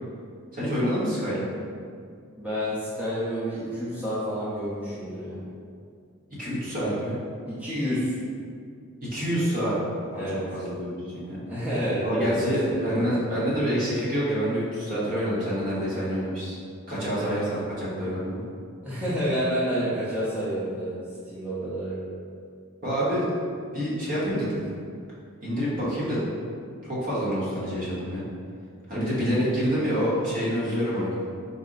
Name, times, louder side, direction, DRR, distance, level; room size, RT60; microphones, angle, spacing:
voice 1, 0.5-1.5 6.4-7.2 9.0-9.8 10.1-11.4 12.0-16.6 16.9-18.4 22.8-23.2 23.7-24.6 25.4-26.3 26.8-28.2 28.9-31.2, equal, 40° right, -8 dB, 0.9 m, -27 dB
voice 2, 2.4-5.4 7.5-8.1 10.1-10.4 11.5-13.4 17.1-17.5 18.8-22.0, equal, 5° right, -12 dB, 0.7 m, -29 dB
4.1 x 2.1 x 3.7 m, 2.2 s
head